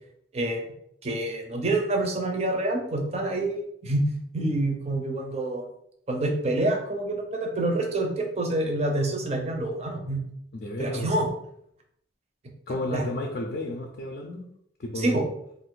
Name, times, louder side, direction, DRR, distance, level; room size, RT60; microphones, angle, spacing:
voice 1, 0.3-0.6 1.0-4.0 4.3-5.6 6.1-10.2 10.8-11.3 12.7-13.0 15.0-15.2, right 2 dB, 35° right, 2 dB, 0.5 m, -27 dB
voice 2, 10.5-11.1 12.7-14.5 14.8-15.2, left 1 dB, 55° left, 1 dB, 0.4 m, -32 dB
2.5 x 2.5 x 3.7 m, 0.74 s
head